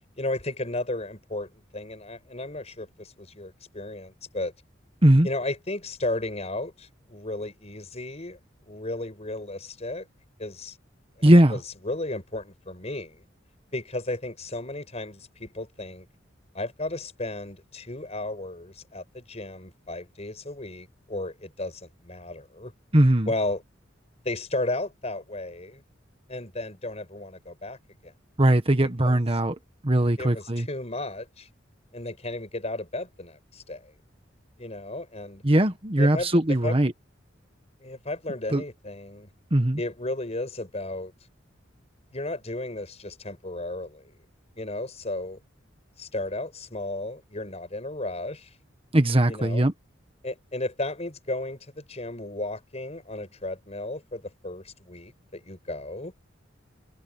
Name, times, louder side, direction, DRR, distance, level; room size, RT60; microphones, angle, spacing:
voice 1, 0.2-4.5 5.2-8.4 8.7-10.1 10.4-10.8 11.2-13.2 13.7-16.1 16.5-22.7 23.3-23.6 24.2-25.8 26.3-27.8 28.0-28.1 28.8-29.2 30.2-31.5 31.9-33.9 34.6-35.4 36.0-36.8 37.8-39.3 39.8-41.1 42.1-44.0 44.6-45.4 46.0-48.5 49.3-49.6 50.2-56.2, left 2 dB, 35° left, 5.9 m, -34 dB
voice 2, 11.2-11.6 22.9-23.3 28.4-29.5 29.8-30.7 35.4-36.9 38.5-38.6 39.5-39.8 48.9-49.7, right 1 dB, 30° right, 1.4 m, -20 dB
head